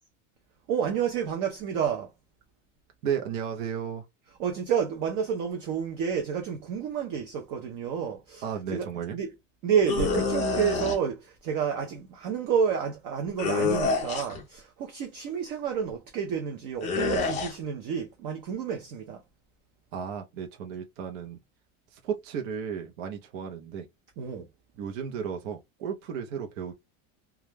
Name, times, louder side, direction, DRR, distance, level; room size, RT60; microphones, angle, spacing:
voice 1, 0.7-2.1 4.4-9.3 9.6-19.2 24.2-24.5, right 7 dB, 40° right, 0.4 m, -30 dB
voice 2, 3.0-4.0 8.4-9.2 19.9-21.4 21.9-23.9 24.8-26.7, right 7 dB, 70° right, 0.7 m, -34 dB
sound 1, 9.9-11.0 13.4-14.4 16.8-17.5, left 3 dB, 20° left, 0.4 m, -27 dB
2.3 x 2.0 x 3.1 m
supercardioid pair, 165°, 39 cm